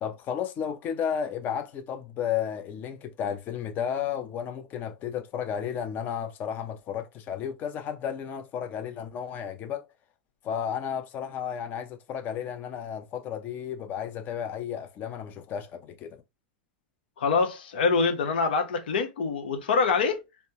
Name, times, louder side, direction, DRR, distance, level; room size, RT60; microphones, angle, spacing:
voice 1, 0.0-9.9 10.4-16.2, left 8 dB, 40° left, 0.6 m, -33 dB
voice 2, 17.2-20.3, left 4 dB, 85° left, 0.8 m, -25 dB
3.3 x 2.0 x 2.8 m
hypercardioid pair, 115°, 5 cm